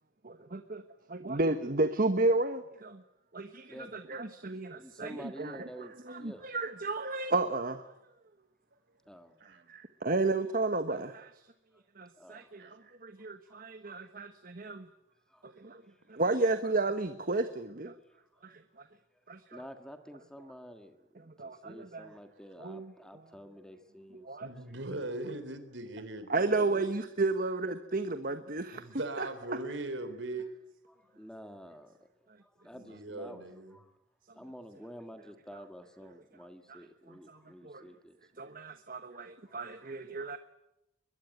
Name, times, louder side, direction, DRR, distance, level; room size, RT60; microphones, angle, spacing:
voice 1, 0.2-0.8 1.1-3.0 3.3-7.9 9.4-11.5 11.9-14.9 15.4-15.8 16.1-18.0 18.4-18.9 19.3-19.6 21.2-22.1 22.6-22.9 24.2-24.5 26.3-29.3 36.7-37.9 38.4-40.4, right 2 dB, 45° right, 9 dB, 1.2 m, -33 dB
voice 2, 3.7-4.2 4.7-6.5 9.1-9.4 11.7-11.8 12.2-12.5 13.5-13.7 15.3-15.5 18.3-18.5 19.1-19.2 19.5-24.5 30.9-32.0 32.4-33.5 33.7-33.9 34.3-38.4 39.5-39.6, equal, 5° left, 7 dB, 1.7 m, -50 dB
voice 3, 24.4-26.9 28.7-30.5 32.7-33.8, right 2 dB, 70° right, 10 dB, 3.8 m, -40 dB
22.5 x 22.0 x 9.3 m, 0.87 s
head